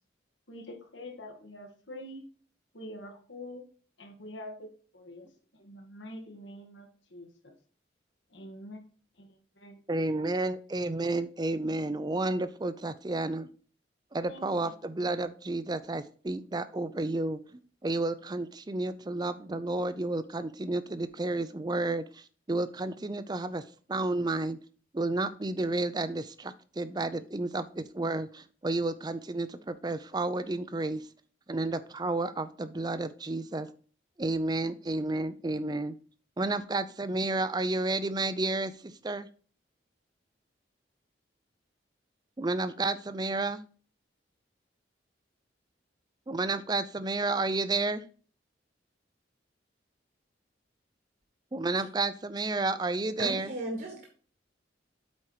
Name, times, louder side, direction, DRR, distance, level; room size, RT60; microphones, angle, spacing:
voice 1, 0.5-2.2 2.7-3.6 4.0-7.5 8.3-8.8 9.2-9.8 10.1-10.3 14.3-14.7, left 1 dB, 75° left, 4 dB, 1.9 m, -46 dB
voice 2, 9.9-13.5 14.1-23.6 23.9-24.6 24.9-31.1 31.5-33.7 34.2-36.0 36.4-39.3 42.4-43.6 46.3-48.0 51.5-53.5, right 2 dB, 20° right, 13 dB, 0.5 m, -31 dB
voice 3, 53.2-54.1, right 1 dB, 50° right, 0 dB, 1.5 m, -35 dB
8.3 x 4.5 x 4.9 m, 0.41 s
head